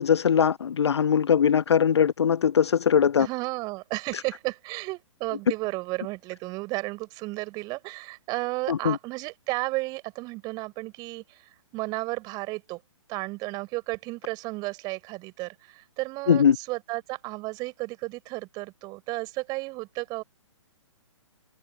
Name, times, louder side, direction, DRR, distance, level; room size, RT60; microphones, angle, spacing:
voice 1, 0.0-3.3 8.7-9.0 16.3-16.6, left 7 dB, 55° left, 0.6 m, -21 dB
voice 2, 3.2-12.8 13.1-20.2, right 23 dB, 25° right, 5.6 m, -33 dB
figure-of-eight pair, 125°, 16 cm